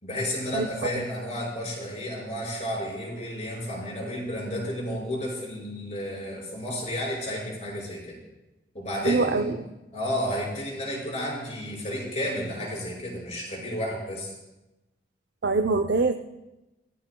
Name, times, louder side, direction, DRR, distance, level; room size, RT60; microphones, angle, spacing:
voice 1, 0.0-8.2 8.7-9.5 9.9-14.3, equal, 40° left, -2 dB, 5.8 m, -32 dB
voice 2, 9.0-9.6 15.4-16.1, right 3 dB, 80° right, 5 dB, 0.6 m, -23 dB
25.5 x 16.0 x 2.3 m, 1.0 s
head